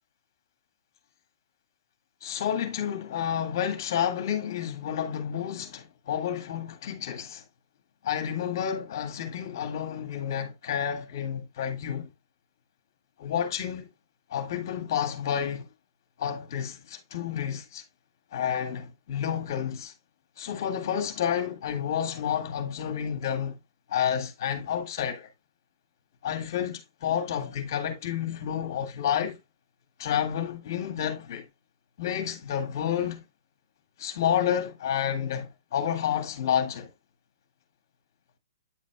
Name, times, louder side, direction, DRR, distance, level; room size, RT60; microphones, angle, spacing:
voice 1, 2.2-7.4 8.0-12.1 13.2-13.9 14.3-15.7 16.2-17.8 18.3-19.9 20.4-23.6 23.9-25.3 26.2-29.4 30.0-31.5 32.0-33.2 34.0-36.9, left 9 dB, 50° left, 1.9 m, -30 dB
9.2 x 7.2 x 2.2 m
figure-of-eight pair, 120°, 2 cm